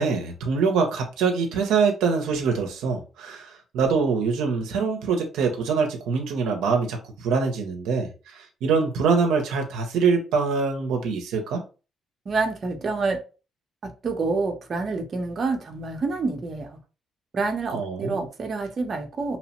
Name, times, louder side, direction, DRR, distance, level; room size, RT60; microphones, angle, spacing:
voice 1, 0.0-11.6 17.7-18.2, right 5 dB, 90° right, 0.5 m, -24 dB
voice 2, 12.3-13.2 14.0-16.8 17.3-19.4, right 3 dB, 45° right, 0.6 m, -27 dB
2.8 x 2.0 x 2.9 m
cardioid pair, 90°, 0 cm